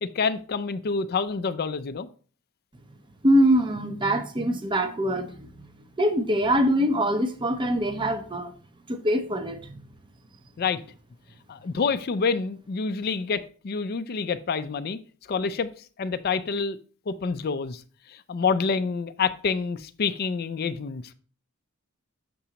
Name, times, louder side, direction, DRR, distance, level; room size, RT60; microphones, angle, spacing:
voice 1, 0.0-2.1 10.6-10.8 11.5-15.0 15.3-15.7 16.0-16.8 17.1-17.8 18.1-21.1, left 5 dB, 45° left, 0.4 m, -27 dB
voice 2, 3.2-5.7 6.0-8.5 8.9-9.9, equal, 20° right, 0.6 m, -23 dB
6.8 x 6.0 x 2.8 m
head